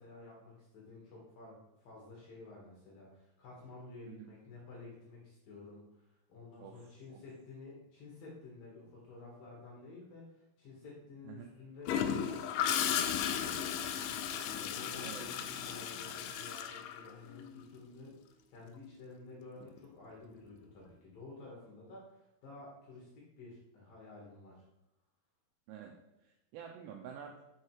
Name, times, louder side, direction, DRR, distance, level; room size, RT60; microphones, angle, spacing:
voice 1, 0.0-13.6 14.4-24.6, left 3 dB, 65° left, -3 dB, 2.5 m, -52 dB
voice 2, 6.6-7.2 11.2-11.5 15.0-15.3 25.7-27.4, right 8 dB, 90° right, 1 dB, 2.4 m, -49 dB
Gurgling / Toilet flush, 11.9-17.6 19.6-19.8, left 9 dB, 85° left, 2.9 m, -35 dB
6.5 x 4.8 x 4.5 m, 0.92 s
omnidirectional pair, 5.6 m